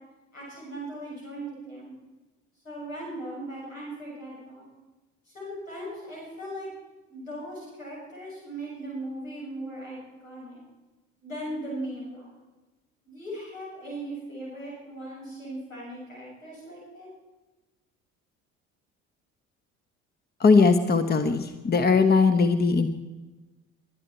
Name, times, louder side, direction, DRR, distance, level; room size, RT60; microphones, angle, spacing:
voice 1, 0.3-2.0 2.6-4.7 5.3-6.7 7.1-10.6 11.2-12.3 13.0-17.1, right 1 dB, 85° left, -5 dB, 7.4 m, -38 dB
voice 2, 20.4-22.9, left 4 dB, 25° left, 11 dB, 1.3 m, -20 dB
23.0 x 12.0 x 4.5 m, 1.1 s
figure-of-eight pair, 55°, 39 cm